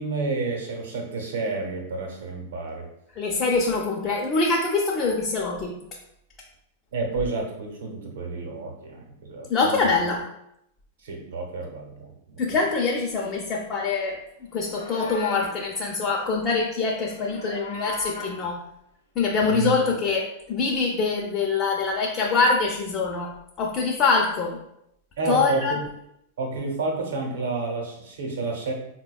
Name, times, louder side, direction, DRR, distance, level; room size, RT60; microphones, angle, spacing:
voice 1, 0.0-2.9 6.9-9.9 11.0-12.5 19.4-19.8 25.2-25.8 26.4-28.7, right 3 dB, 70° right, 1 dB, 0.8 m, -30 dB
voice 2, 3.2-5.7 9.5-10.2 12.4-14.2 14.5-18.6 19.2-23.3 23.6-24.6 25.3-25.7, left 4 dB, 35° left, -1 dB, 0.6 m, -24 dB
Livestock farm animals working animals, 14.5-15.6 16.9-18.4, left 3 dB, 85° left, 0.7 m, -37 dB
4.0 x 2.2 x 2.3 m, 0.78 s
hypercardioid pair, 100°, 0 cm